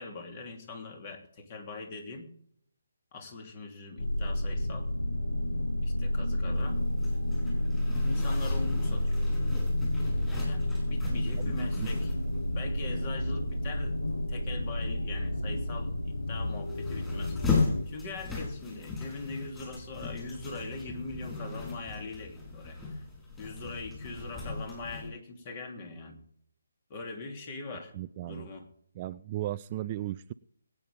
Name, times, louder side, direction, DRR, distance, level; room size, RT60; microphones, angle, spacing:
voice 1, 0.0-2.3 3.1-4.9 5.8-6.8 8.0-9.2 10.4-12.1 12.5-14.0 14.3-17.4 17.9-22.8 23.4-26.2 26.9-27.9 28.3-28.7, left 3 dB, 30° left, 4 dB, 3.0 m, -42 dB
sound 1, 4.0-17.8, left 1 dB, 75° left, 1.4 m, -30 dB
Zipper (clothing), 6.5-25.1, left 4 dB, 10° left, 5.3 m, -38 dB
voice 2, 27.9-28.5 29.0-30.3, right 14 dB, 30° right, 14 dB, 0.4 m, -36 dB
22.0 x 9.5 x 3.6 m, 0.67 s
figure-of-eight pair, 145°, 0 cm